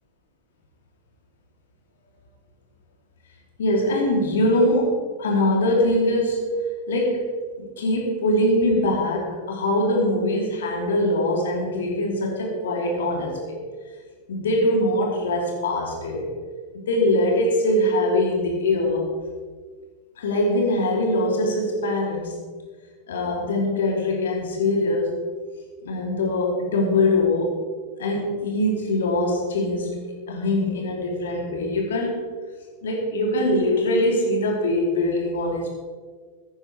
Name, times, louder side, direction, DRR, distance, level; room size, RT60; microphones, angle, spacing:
voice 1, 3.6-6.6 6.9-7.3 7.6-13.6 14.3-16.2 16.7-19.1 20.2-22.4 23.1-25.1 25.8-27.6 28.0-30.0 30.3-32.2 32.8-35.7, left 1 dB, 65° left, -1 dB, 2.9 m, -22 dB
16.0 x 10.0 x 4.7 m, 1.5 s
figure-of-eight pair, 95°, 0 cm